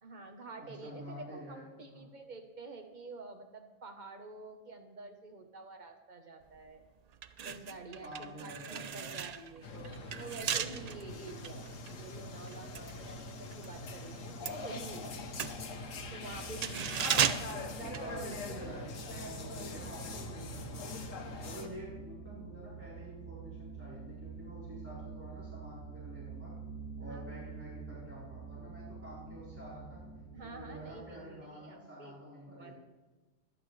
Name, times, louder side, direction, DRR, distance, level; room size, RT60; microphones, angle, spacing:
voice 1, 0.0-6.8 7.4-9.7 10.2-15.4 16.1-18.3 27.0-27.4 30.3-32.2 32.5-32.7, right 3 dB, 40° right, 5 dB, 1.2 m, -48 dB
voice 2, 0.6-2.0 8.0-9.2 16.7-21.0 21.4-26.6 27.0-30.1 30.4-32.7, right 1 dB, 10° right, -8 dB, 4.0 m, -48 dB
sound 1, 6.5-6.7 7.1-13.7 14.0-18.7 19.0-19.1, right 8 dB, 75° right, 0.3 m, -36 dB
sound 2, 9.6-21.7, left 3 dB, 85° left, 1.4 m, -43 dB
sound 3, 14.2-31.0, right 4 dB, 70° left, 1.5 m, -48 dB
23.5 x 9.0 x 3.2 m, 1.2 s
omnidirectional pair, 1.3 m